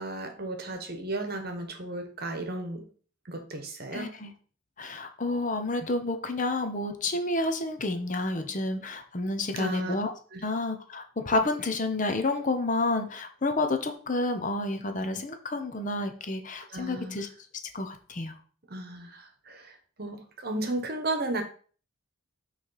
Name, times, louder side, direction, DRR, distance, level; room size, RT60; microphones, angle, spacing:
voice 1, 0.0-2.9 3.3-4.1 9.6-10.0 10.3-10.5 16.7-17.2 18.7-21.4, right 2 dB, 45° right, 6 dB, 1.1 m, -34 dB
voice 2, 3.9-4.3 4.8-10.1 10.4-17.3 17.7-18.3, left 2 dB, 35° left, 7 dB, 0.7 m, -30 dB
6.1 x 3.3 x 5.6 m, 0.41 s
head